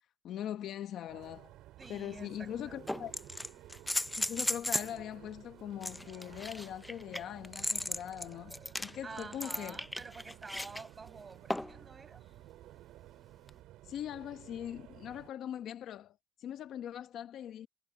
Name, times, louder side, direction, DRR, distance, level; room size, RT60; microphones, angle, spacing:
voice 1, 0.2-1.5 1.9-3.1 4.2-9.8 13.8-17.7, left 10 dB, 50° left, 0.9 m, -41 dB
sound 1, 1.1-15.3, right 15 dB, 65° right, 5.4 m, -54 dB
sound 2, 1.8-1.9 2.9-5.0 5.8-10.8 11.5-11.8 13.5-13.6, left 1 dB, 5° left, 0.5 m, -36 dB
voice 2, 1.8-3.1 9.0-12.2, right 4 dB, 20° right, 8.0 m, -49 dB
cardioid pair, 160°, 0 cm